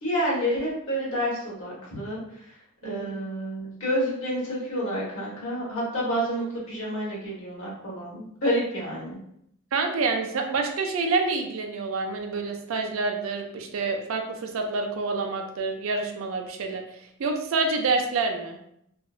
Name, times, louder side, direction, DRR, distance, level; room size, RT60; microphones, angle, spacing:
voice 1, 0.0-2.2 2.8-9.2, equal, 70° left, -6 dB, 1.1 m, -29 dB
voice 2, 9.7-16.8 17.2-18.6, right 3 dB, 70° right, 3 dB, 0.4 m, -27 dB
2.8 x 2.0 x 2.3 m, 0.73 s
head